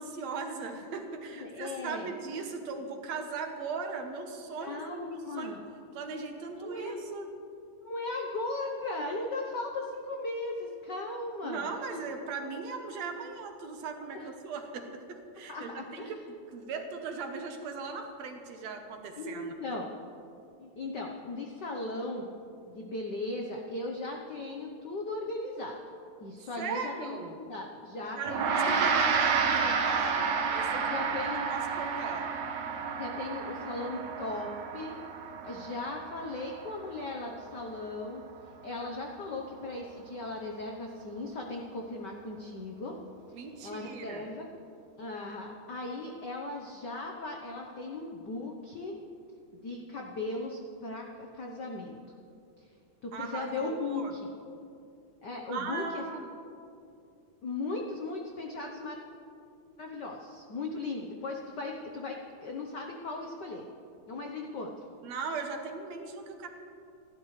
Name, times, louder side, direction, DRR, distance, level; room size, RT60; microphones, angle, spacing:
voice 1, 0.0-5.6 5.9-7.3 11.4-19.5 26.6-27.4 28.2-30.9 31.3-32.3 43.3-44.3 53.1-54.1 55.5-56.3 65.0-66.5, right 4 dB, 70° right, 4 dB, 2.3 m, -38 dB
voice 2, 1.4-2.1 4.6-5.6 6.6-6.9 7.8-12.0 14.1-14.3 15.5-16.1 19.2-19.9 20.6-22.3 22.7-25.8 26.2-28.7 30.8-31.5 32.9-35.0 35.4-38.2 38.6-43.0 43.3-44.5 45.0-48.9 49.5-52.0 52.6-52.7 53.0-54.3 55.2-56.0 57.4-59.0 59.8-63.7 64.1-64.7, left 2 dB, 70° left, 1 dB, 1.0 m, -37 dB
Gong, 28.3-37.9, right 5 dB, 85° right, 2.6 m, -31 dB
28.0 x 12.0 x 3.2 m, 2.6 s
omnidirectional pair, 3.3 m